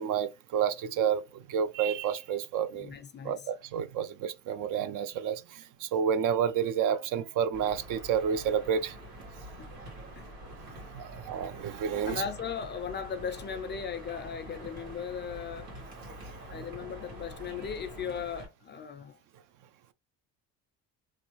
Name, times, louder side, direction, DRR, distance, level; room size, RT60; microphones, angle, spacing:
voice 1, 0.0-2.9 3.2-8.9 10.9-12.2, right 8 dB, 60° right, 0.5 m, -30 dB
voice 2, 2.7-3.5 9.6-9.7 10.2-10.3 11.1-11.2 12.0-15.7 16.5-19.2, left 7 dB, 30° left, 0.4 m, -37 dB
sound 1, 7.5-18.5, right 1 dB, 80° right, 1.7 m, -46 dB
3.1 x 2.3 x 3.0 m
supercardioid pair, 85°, 36 cm